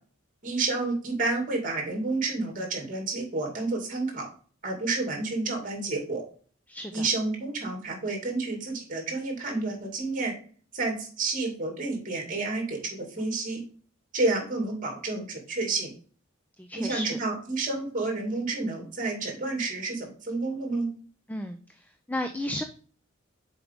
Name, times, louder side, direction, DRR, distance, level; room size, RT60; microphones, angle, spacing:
voice 1, 0.4-4.3 4.6-6.2 6.9-10.3 10.7-13.6 14.1-15.9 16.7-20.9, right 3 dB, 40° right, 1 dB, 2.5 m, -30 dB
voice 2, 6.7-7.0 16.6-17.2 21.3-22.6, left 1 dB, 10° left, 7 dB, 0.4 m, -34 dB
7.2 x 4.8 x 3.5 m, 0.43 s
head